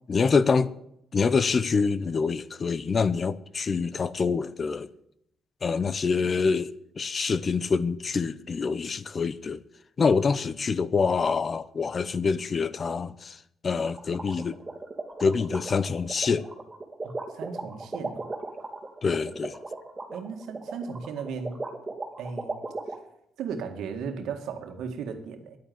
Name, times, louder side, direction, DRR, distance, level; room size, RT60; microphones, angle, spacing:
voice 1, 0.1-0.7 1.1-4.9 5.6-9.6 10.0-14.6 15.2-16.5 19.0-19.6, left 5 dB, 40° left, 0.7 m, -26 dB
sound 1, 13.8-22.9, right 3 dB, 20° right, 2.7 m, -36 dB
voice 2, 17.0-18.3 20.1-21.6 22.2-22.6 23.4-25.6, right 6 dB, 80° right, 1.9 m, -36 dB
10.5 x 9.4 x 9.4 m
cardioid pair, 90°, 0 cm